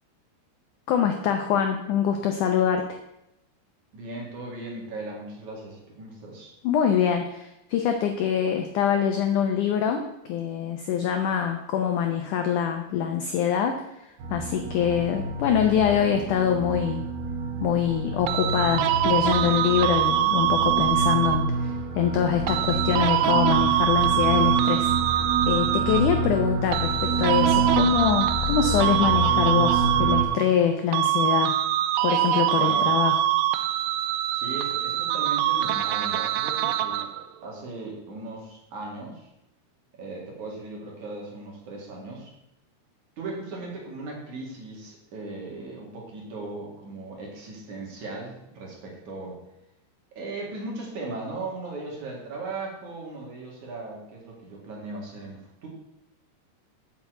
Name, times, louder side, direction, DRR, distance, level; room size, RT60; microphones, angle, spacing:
voice 1, 0.9-3.0 6.6-10.0 10.3-13.9 14.3-17.0 17.6-24.9 25.5-31.5 32.0-33.3, left 8 dB, 85° left, 5 dB, 1.8 m, -24 dB
voice 2, 3.9-6.5 32.6-33.0 34.3-37.1 37.4-39.3 40.0-42.3 43.2-49.4 50.1-55.7, right 2 dB, 50° right, -2 dB, 3.4 m, -37 dB
sound 1, 14.2-30.2, right 3 dB, 65° right, 2.8 m, -28 dB
sound 2, 18.3-21.6 22.5-26.3 26.7-30.7 30.9-37.3, right 12 dB, 85° right, 2.7 m, -24 dB
7.3 x 6.8 x 7.7 m, 0.87 s
omnidirectional pair, 4.7 m